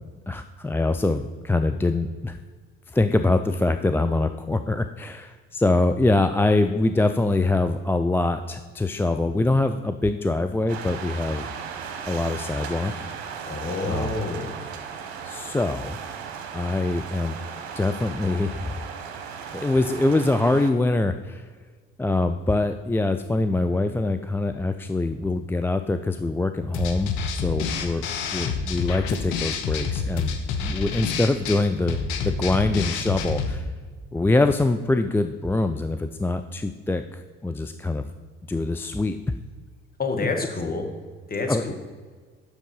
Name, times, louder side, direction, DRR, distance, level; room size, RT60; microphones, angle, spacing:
voice 1, 0.0-2.4 2.9-11.5 12.1-12.9 13.8-14.1 15.2-16.0 16.5-17.4 17.7-18.8 19.5-21.5 22.0-28.0 28.3-32.0 32.2-33.7 34.1-38.1 38.5-39.2 41.5-41.7, left 2 dB, 5° left, 8 dB, 0.4 m, -24 dB
sound 1, 10.7-20.7, right 7 dB, 80° right, 1.0 m, -36 dB
voice 2, 13.5-14.5 40.0-40.9 41.3-41.7, left 3 dB, 30° left, 3 dB, 1.8 m, -28 dB
sound 2, 26.7-33.6, left 5 dB, 70° left, 1.0 m, -28 dB
7.8 x 6.4 x 5.5 m, 1.5 s
hypercardioid pair, 60°, 31 cm